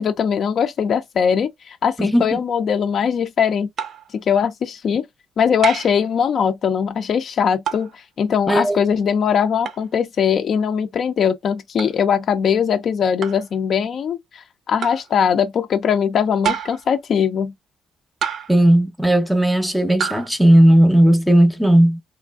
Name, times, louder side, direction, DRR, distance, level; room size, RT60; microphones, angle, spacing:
voice 1, 0.0-3.7 4.3-5.0 5.4-17.5, left 7 dB, 60° left, 0.5 m, -20 dB
voice 2, 2.0-2.4 8.5-8.8 18.5-22.0, right 1 dB, 5° right, 0.7 m, -15 dB
sound 1, 3.8-4.1 5.6-6.0 7.7-7.9 9.6-9.8 11.8-12.0 13.2-13.5 14.8-15.1 16.4-16.9 18.2-18.7 20.0-20.3, right 8 dB, 60° right, 0.5 m, -27 dB
3.1 x 2.5 x 2.3 m
cardioid pair, 85°, 0 cm